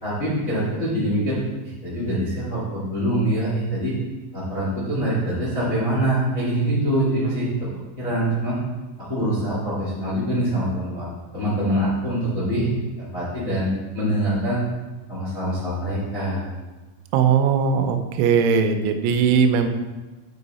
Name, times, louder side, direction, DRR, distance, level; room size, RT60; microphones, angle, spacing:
voice 1, 0.0-1.4 1.8-3.9 4.3-7.5 8.0-8.6 9.1-11.1 11.3-12.7 13.0-14.6 15.1-16.4, right 1 dB, 40° left, -8 dB, 1.2 m, -24 dB
voice 2, 17.1-19.7, right 6 dB, 85° right, 7 dB, 3.1 m, -19 dB
8.7 x 4.7 x 4.1 m, 1.2 s
omnidirectional pair, 5.5 m